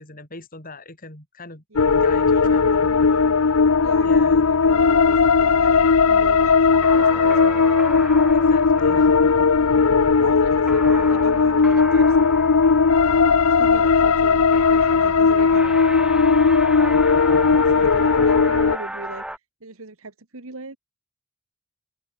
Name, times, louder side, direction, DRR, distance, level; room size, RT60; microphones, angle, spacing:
voice 1, 0.0-1.6 2.0-2.9 4.0-4.5 8.3-9.1, left 3 dB, 40° left, 6.0 m, -40 dB
voice 2, 1.7-3.4 3.8-8.2 8.9-9.1 9.7-12.5 13.1-20.8, right 3 dB, 70° right, 1.9 m, -38 dB
sound 1, 1.8-18.8, left 5 dB, 80° left, 0.7 m, -17 dB
sound 2, 2.5-19.4, right 1 dB, 5° right, 1.4 m, -37 dB
open air
head